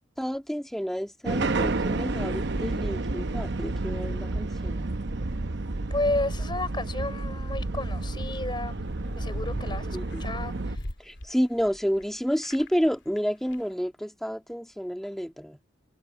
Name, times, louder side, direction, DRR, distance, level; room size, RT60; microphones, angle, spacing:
voice 1, 0.2-5.0 9.9-10.3 11.0-15.6, equal, ahead, 1.7 m, -30 dB
sound 1, 1.2-10.8, right 2 dB, 65° right, 0.9 m, -30 dB
voice 2, 5.9-8.8 9.1-10.9, left 2 dB, 25° left, 5.6 m, -32 dB
sound 2, 8.8-12.1 12.3-12.9 13.2-13.3 13.5-13.6, left 1 dB, 70° left, 2.6 m, -40 dB
head